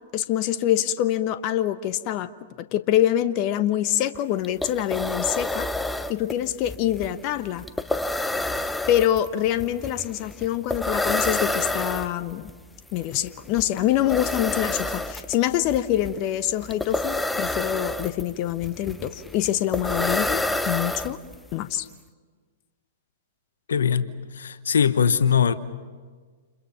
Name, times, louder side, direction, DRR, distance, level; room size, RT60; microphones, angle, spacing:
voice 1, 0.1-2.3 2.7-5.7 6.1-7.6 8.9-12.5 12.9-21.2 21.5-21.9, left 12 dB, 40° left, 1.0 m, -25 dB
sound 1, 4.1-4.2 4.4-21.5, left 2 dB, 5° left, 0.9 m, -29 dB
voice 2, 23.7-24.0 24.3-25.5, left 7 dB, 75° left, 1.1 m, -20 dB
29.5 x 29.0 x 5.8 m
hypercardioid pair, 110°, 0 cm